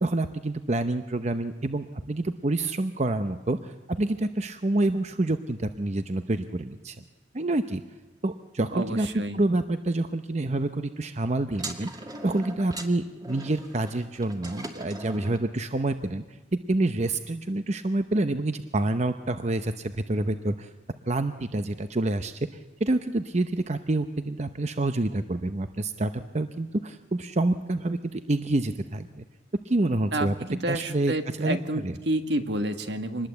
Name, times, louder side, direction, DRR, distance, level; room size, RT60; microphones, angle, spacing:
voice 1, 0.0-7.0 7.3-7.8 8.2-16.2 16.7-20.7 21.1-22.5 22.8-29.2 29.6-30.3 30.7-32.0, right 2 dB, 40° right, 9 dB, 0.7 m, -27 dB
voice 2, 8.7-9.4 30.1-33.3, right 1 dB, 70° right, 8 dB, 1.9 m, -29 dB
sound 1, 11.5-15.5, right 1 dB, 20° right, 2.2 m, -40 dB
25.5 x 20.5 x 8.0 m, 1.2 s
head